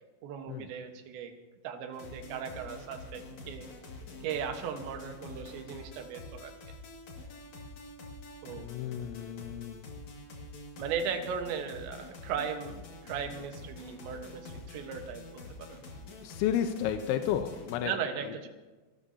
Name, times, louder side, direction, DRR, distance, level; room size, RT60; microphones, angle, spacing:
voice 1, 0.2-1.3 1.6-3.7 4.2-6.6 8.4-8.7 10.8-15.8 17.8-18.5, right 7 dB, 75° right, 6 dB, 3.4 m, -37 dB
sound 1, 1.9-17.8, left 2 dB, 45° left, 2.6 m, -47 dB
voice 2, 8.6-9.8 16.2-17.9, left 10 dB, 80° left, 6 dB, 3.2 m, -32 dB
29.5 x 13.0 x 2.8 m, 1.2 s
omnidirectional pair, 5.4 m